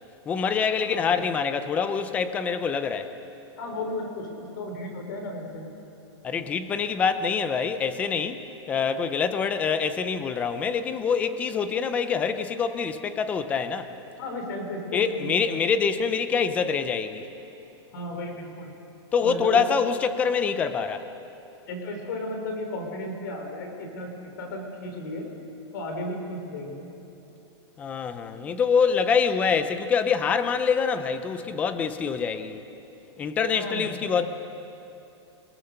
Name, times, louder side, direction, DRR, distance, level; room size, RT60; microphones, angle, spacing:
voice 1, 0.3-3.1 6.2-8.4 8.7-13.9 14.9-17.3 19.1-21.1 27.8-32.6 33.2-34.3, left 6 dB, 10° left, 11 dB, 0.6 m, -25 dB
voice 2, 0.9-1.3 3.6-5.7 14.2-15.6 17.9-18.7 19.2-19.6 21.7-25.3 25.7-26.9 33.5-34.0, left 1 dB, 45° left, 3 dB, 4.4 m, -34 dB
27.5 x 18.5 x 6.7 m, 2.8 s
supercardioid pair, 180°, 15 cm